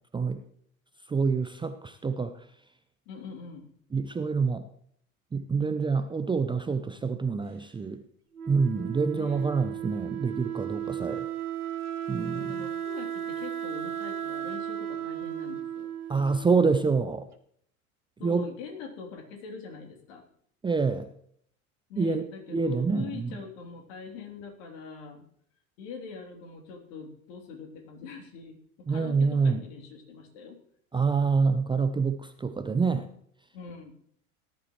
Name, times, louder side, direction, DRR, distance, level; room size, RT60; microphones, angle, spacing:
voice 1, 1.1-2.3 3.9-4.6 5.3-8.0 8.5-11.3 12.1-12.5 16.1-17.3 18.2-18.5 20.6-21.1 22.0-23.3 28.9-29.6 30.9-33.1, right 4 dB, 10° right, 9 dB, 0.6 m, -26 dB
voice 2, 3.1-3.7 9.1-9.5 12.3-15.9 18.2-20.2 21.9-25.3 25.8-30.6 33.5-33.9, left 5 dB, 60° left, 2 dB, 3.4 m, -43 dB
Wind instrument woodwind instrument, 8.3-17.1, right 9 dB, 85° right, 1.2 m, -35 dB
18.5 x 11.0 x 3.2 m, 0.65 s
figure-of-eight pair, 80°, 44 cm